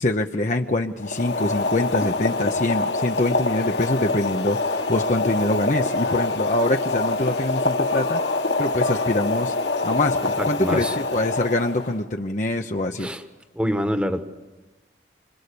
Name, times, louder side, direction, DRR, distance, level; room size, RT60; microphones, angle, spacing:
voice 1, 0.0-8.2 8.6-9.5 9.8-13.1, left 2 dB, 40° left, 3 dB, 0.9 m, -24 dB
Boiling, 1.0-12.0, left 3 dB, 65° left, 1.9 m, -25 dB
voice 2, 10.4-11.0 13.0-13.2 13.5-14.2, equal, 5° right, 8 dB, 1.4 m, -25 dB
26.5 x 25.5 x 7.0 m, 1.2 s
head